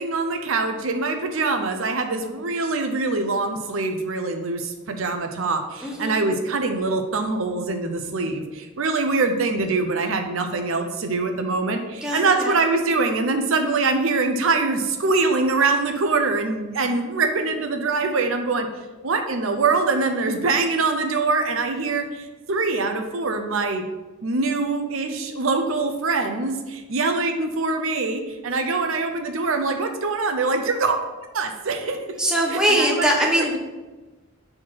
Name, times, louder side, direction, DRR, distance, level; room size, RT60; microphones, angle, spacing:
voice 1, 0.0-18.7 19.0-23.8 24.2-31.0 31.3-32.0 32.5-33.1, right 3 dB, 75° right, 6 dB, 0.7 m, -24 dB
voice 2, 5.8-6.2 12.0-12.6 32.2-33.5, right 1 dB, 5° right, -2 dB, 0.9 m, -22 dB
4.6 x 4.4 x 5.7 m, 1.2 s
head